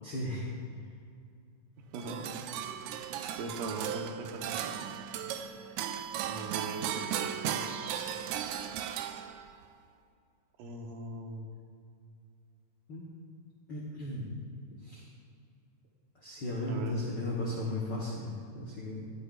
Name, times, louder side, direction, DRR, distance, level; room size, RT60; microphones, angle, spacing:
voice 1, 0.0-0.4 2.8-3.2 12.9-13.0 13.7-14.3 14.8-15.0 16.2-19.1, left 1 dB, 75° left, -5 dB, 1.0 m, -36 dB
voice 2, 1.9-2.4 3.4-4.8 6.2-7.0 7.4-8.0 10.6-11.5 16.7-16.9, right 3 dB, 75° right, 2 dB, 2.6 m, -40 dB
sound 1, 1.9-9.6, right 9 dB, 90° right, 1.6 m, -36 dB
13.0 x 12.0 x 2.5 m, 2.4 s
omnidirectional pair, 3.9 m